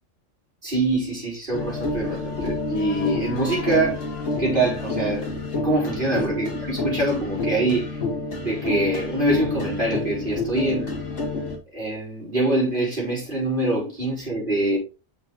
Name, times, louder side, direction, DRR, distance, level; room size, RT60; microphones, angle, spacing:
voice 1, 0.6-4.0 4.4-8.0 8.4-10.9 11.7-14.8, right 2 dB, 40° right, 4.7 m, -24 dB
sound 1, 1.5-11.6, left 3 dB, 70° left, 2.2 m, -29 dB
6.4 x 6.0 x 3.7 m
omnidirectional pair, 1.3 m